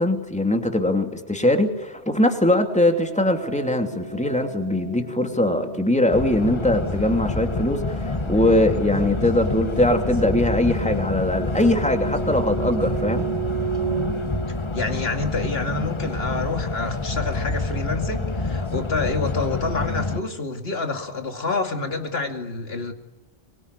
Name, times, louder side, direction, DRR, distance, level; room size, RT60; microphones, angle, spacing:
voice 1, 0.0-13.3, left 1 dB, 5° left, 5 dB, 2.7 m, -21 dB
sound 1, 2.6-15.3, right 4 dB, 40° right, 6.2 m, -34 dB
sound 2, 6.1-20.2, left 3 dB, 30° left, 1.0 m, -27 dB
voice 2, 14.7-22.9, left 3 dB, 65° left, 6 dB, 2.7 m, -28 dB
25.0 x 23.0 x 9.8 m, 1.1 s
omnidirectional pair, 1.1 m